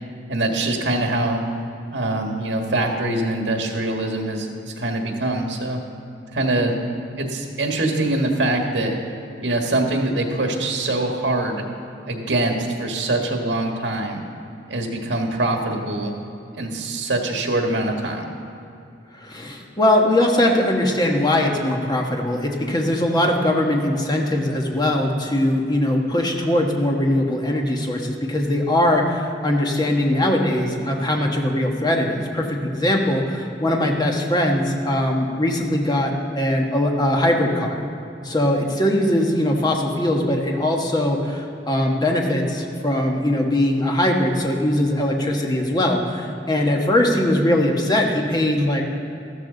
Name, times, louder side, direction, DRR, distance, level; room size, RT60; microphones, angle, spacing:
voice 1, 0.3-1.4 1.9-5.8 6.3-6.7 7.2-9.0 9.4-11.6 12.0-14.2 14.7-16.1 16.6-18.3, right 2 dB, 80° right, 2 dB, 1.6 m, -23 dB
voice 2, 19.2-37.8 38.2-48.9, left 1 dB, 25° left, 1 dB, 1.3 m, -21 dB
14.0 x 13.0 x 3.9 m, 2.7 s
head